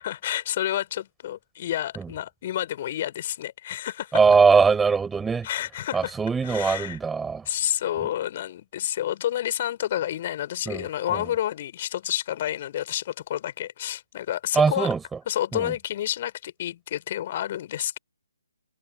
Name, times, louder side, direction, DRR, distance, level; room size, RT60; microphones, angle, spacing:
voice 1, 0.0-4.4 5.4-6.1 6.4-7.0 7.5-14.9 15.3-18.0, left 12 dB, 35° left, 5.2 m, -29 dB
voice 2, 4.1-5.5 5.9-7.4 10.7-10.9 11.1-11.2 14.5-15.0 15.5-15.7, right 5 dB, 5° right, 4.1 m, -21 dB
figure-of-eight pair, 140°, 0 cm